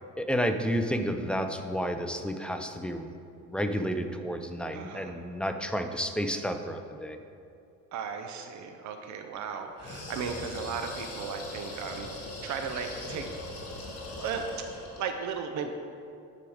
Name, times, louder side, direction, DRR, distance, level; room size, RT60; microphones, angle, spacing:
voice 1, 0.2-3.1 3.5-7.2, equal, 5° left, 6 dB, 0.4 m, -31 dB
voice 2, 4.7-5.2 7.9-13.3 14.2-14.7 15.0-15.7, right 6 dB, 60° right, 6 dB, 0.7 m, -36 dB
sound 1, 9.8-15.1, left 2 dB, 45° left, 2.0 m, -40 dB
10.0 x 4.9 x 4.9 m, 2.5 s
cardioid pair, 120°, 33 cm